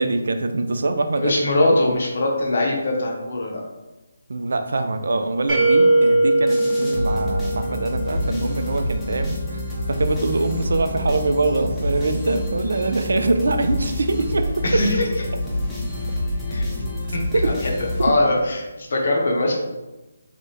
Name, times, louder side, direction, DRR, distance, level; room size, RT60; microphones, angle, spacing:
voice 1, 0.0-1.4 1.7-1.8 4.3-9.6 9.9-14.9 17.3-17.5, right 3 dB, 70° right, 8 dB, 0.3 m, -23 dB
voice 2, 1.1-3.6 14.6-15.1 16.5-16.6 17.1-17.7 18.0-19.6, left 2 dB, 60° left, -1 dB, 0.7 m, -21 dB
sound 1, 5.5-8.3, right 2 dB, 25° right, 1.0 m, -19 dB
sound 2, 6.5-18.6, left 1 dB, 5° left, 0.6 m, -27 dB
3.4 x 2.2 x 2.7 m, 1.1 s
figure-of-eight pair, 160°, 0 cm